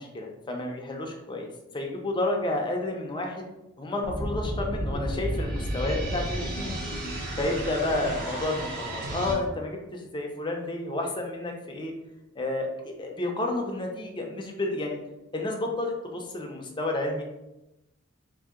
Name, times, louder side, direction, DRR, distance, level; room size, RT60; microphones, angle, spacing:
voice 1, 0.0-1.5 1.7-3.4 3.8-6.7 7.4-11.9 12.4-15.0 15.3-17.2, left 2 dB, 25° left, 1 dB, 0.5 m, -31 dB
sound 1, 4.0-9.3, right 1 dB, 45° right, 0.9 m, -32 dB
2.7 x 2.6 x 3.6 m, 0.94 s
head